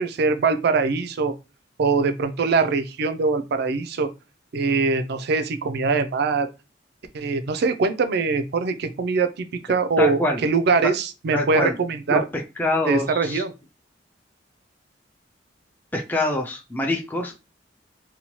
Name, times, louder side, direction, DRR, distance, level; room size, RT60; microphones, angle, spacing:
voice 1, 0.0-1.3 1.8-4.1 4.5-6.5 7.1-12.2 12.9-13.5, right 4 dB, 60° right, 10 dB, 0.4 m, -22 dB
voice 2, 10.0-10.4 11.3-11.7 12.1-13.4 15.9-17.4, left 1 dB, 10° left, 1 dB, 0.4 m, -25 dB
2.7 x 2.2 x 2.9 m, 0.28 s
head